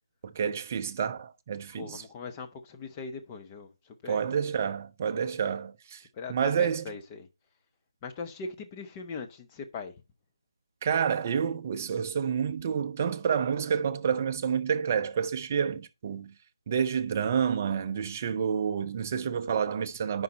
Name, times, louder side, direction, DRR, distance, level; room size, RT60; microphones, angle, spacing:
voice 1, 0.2-2.0 4.1-6.0 6.3-6.9 10.8-16.3 16.7-20.2, right 7 dB, 25° right, 0.6 m, -29 dB
voice 2, 1.7-3.7 4.0-4.2 6.1-7.3 8.0-9.9, left 4 dB, 15° left, 0.9 m, -40 dB
9.5 x 5.4 x 4.2 m
figure-of-eight pair, 160°, 3 cm